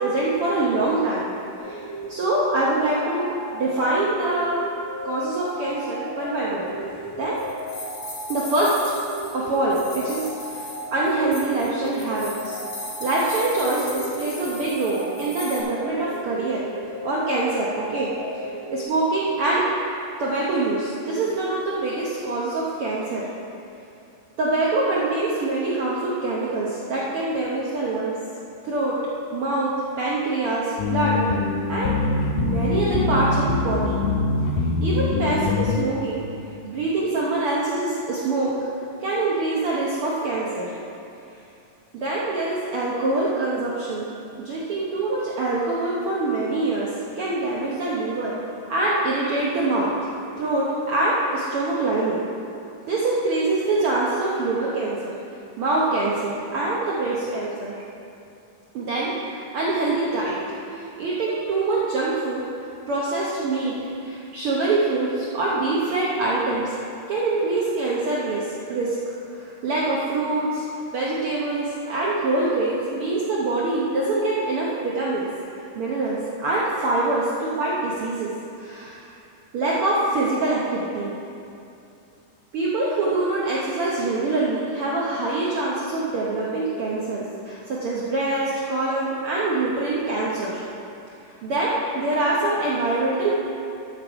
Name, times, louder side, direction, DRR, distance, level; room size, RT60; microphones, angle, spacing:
voice 1, 0.0-1.3 1.6-1.8 2.1-4.6 5.0-6.7 7.2-7.4 8.3-8.8 9.3-10.6 10.9-12.6 13.0-16.6 17.0-18.1 18.7-19.6 20.2-23.2 24.4-28.1 28.6-28.9 29.3-29.7 30.0-31.3 31.7-31.9 32.4-34.0 34.8-36.2 36.6-38.5 39.0-40.7 42.0-44.1 44.4-46.9 47.2-48.4 48.7-49.9 50.4-52.2 52.9-55.0 55.6-57.7 58.7-60.4 60.7-62.4 62.9-66.7 67.1-70.6 70.9-78.3 78.6-79.0 79.5-81.1 82.5-90.6 91.4-93.3, right 2 dB, 90° right, -6 dB, 1.2 m, -24 dB
sound 1, 1.6-18.8, equal, 20° left, 2.4 m, -35 dB
sound 2, 6.7-15.6, left 2 dB, 55° left, 0.8 m, -38 dB
sound 3, 30.8-35.9, left 3 dB, 85° left, 2.3 m, -23 dB
13.5 x 5.3 x 4.9 m, 2.6 s
omnidirectional pair, 3.8 m